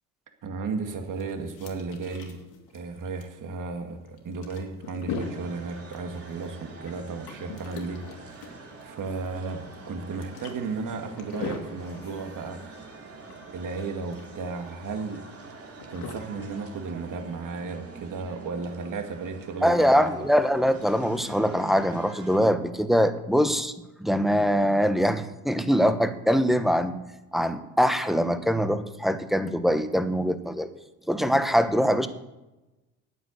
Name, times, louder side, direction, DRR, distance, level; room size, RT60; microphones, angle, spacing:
voice 1, 0.4-2.4 2.7-12.9 13.5-15.2 15.9-20.1, right 4 dB, 55° right, 5 dB, 2.2 m, -34 dB
sound 1, 0.9-17.4, left 4 dB, 75° left, 2.6 m, -42 dB
sound 2, 5.2-22.4, right 3 dB, 35° right, 3.2 m, -46 dB
voice 2, 19.6-23.7 24.0-27.0 27.3-30.7 31.1-32.1, equal, ahead, 10 dB, 1.1 m, -23 dB
9.4 x 9.0 x 8.2 m, 1.0 s
supercardioid pair, 70°, 38 cm